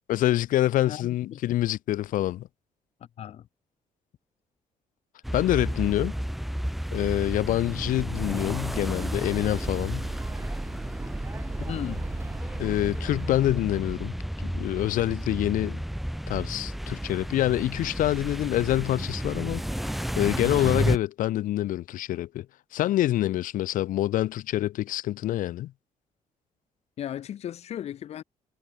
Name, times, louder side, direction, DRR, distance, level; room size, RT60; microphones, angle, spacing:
voice 1, 0.1-2.5 5.3-6.1 6.9-10.1 12.6-14.1 14.4-15.8 16.3-19.6 20.2-22.4 22.7-25.7, left 14 dB, 85° left, 3.4 m, -26 dB
voice 2, 0.9-1.4 3.2-3.5 11.7-12.0 16.9-17.0 27.0-28.2, left 10 dB, 50° left, 2.0 m, -36 dB
sound 1, 5.2-21.0, equal, ahead, 2.3 m, -32 dB
sound 2, 8.2-13.3, right 4 dB, 20° right, 7.6 m, -39 dB
cardioid pair, 175°, 13 cm